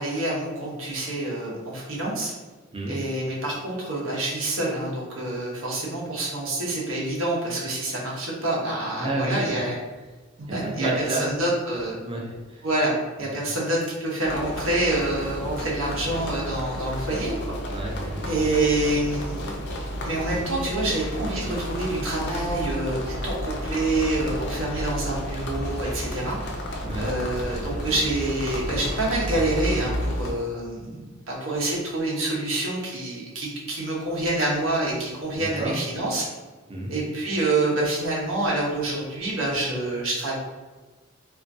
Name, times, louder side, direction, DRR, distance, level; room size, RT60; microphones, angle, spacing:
voice 1, 0.0-2.3 2.9-9.8 10.4-12.0 12.6-17.6 18.3-19.6 20.0-26.5 27.0-36.3 36.9-40.4, right 2 dB, 85° right, -4 dB, 0.8 m, -27 dB
voice 2, 9.0-9.6 10.6-11.2 12.0-12.7 17.7-18.4 26.8-27.1 35.3-35.7 36.7-36.9, right 2 dB, 25° right, -2 dB, 0.5 m, -30 dB
sound 1, 14.2-30.3, equal, 60° left, 0.4 m, -31 dB
2.4 x 2.2 x 2.5 m, 1.2 s
head